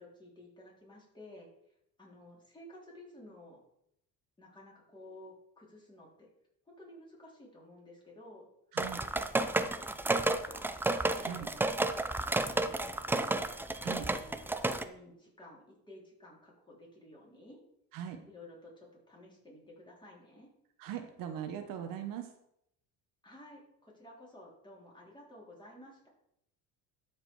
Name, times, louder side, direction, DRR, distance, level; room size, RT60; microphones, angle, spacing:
voice 1, 0.0-1.5 2.0-3.6 4.4-6.3 6.7-8.5 9.0-11.5 12.0-13.4 14.0-17.6 18.3-20.5 23.2-26.1, left 1 dB, 10° left, -3 dB, 3.6 m, -54 dB
sound 1, 8.8-14.8, right 2 dB, 5° right, 0.4 m, -31 dB
voice 2, 20.8-22.3, right 9 dB, 65° right, 6 dB, 1.1 m, -40 dB
12.5 x 5.0 x 4.7 m, 0.76 s
cardioid pair, 125°, 36 cm